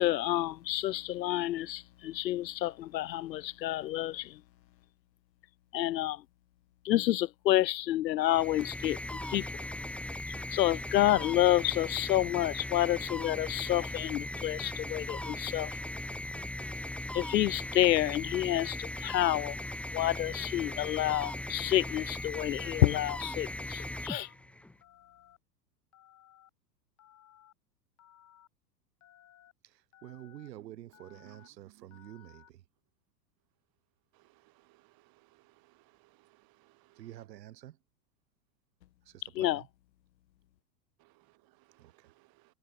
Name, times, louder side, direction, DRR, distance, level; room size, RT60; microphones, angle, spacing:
voice 1, 0.0-4.4 5.7-6.2 6.8-9.5 10.5-15.7 17.1-19.6 19.9-24.3 39.4-39.6, left 14 dB, 80° left, 0.9 m, -29 dB
sound 1, 8.2-24.8, left 1 dB, ahead, 1.1 m, -39 dB
Telephone, 20.7-21.1 21.7-22.3 22.7-23.4 23.8-24.3 24.8-25.4 25.9-26.5 27.0-27.5 28.0-28.5 29.0-29.5 29.9-30.5 30.9-31.5 31.9-32.5, left 12 dB, 35° left, 5.1 m, -60 dB
voice 2, 29.6-32.6 37.0-37.8 39.0-39.7 41.8-42.1, right 13 dB, 75° right, 1.8 m, -49 dB
voice 3, 31.2-32.0 34.1-37.1 41.0-42.5, right 21 dB, 45° right, 3.2 m, -65 dB
hypercardioid pair, 105°, 50 cm